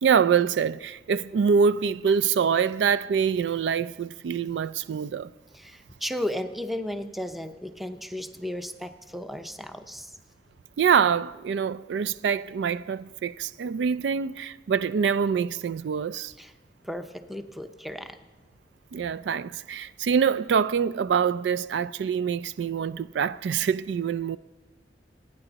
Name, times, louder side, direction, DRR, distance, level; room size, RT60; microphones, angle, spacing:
voice 1, 0.0-5.3 10.8-16.3 18.9-24.4, right 6 dB, 80° right, 0.3 m, -25 dB
voice 2, 5.5-10.2 16.4-16.5 16.8-18.2, left 1 dB, ahead, 0.6 m, -34 dB
26.5 x 9.7 x 4.0 m
head